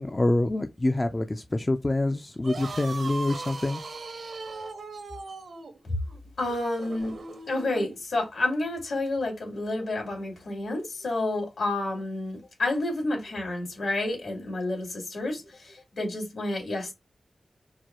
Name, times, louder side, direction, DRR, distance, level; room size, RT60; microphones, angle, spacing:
voice 1, 0.0-3.8, left 2 dB, 25° left, 0.4 m, -26 dB
sound 1, 2.3-8.0, right 3 dB, 75° right, 1.0 m, -38 dB
voice 2, 6.4-7.1 7.5-16.9, left 2 dB, 75° left, 2.5 m, -30 dB
4.6 x 2.2 x 4.3 m
wide cardioid pair, 70°, 0 cm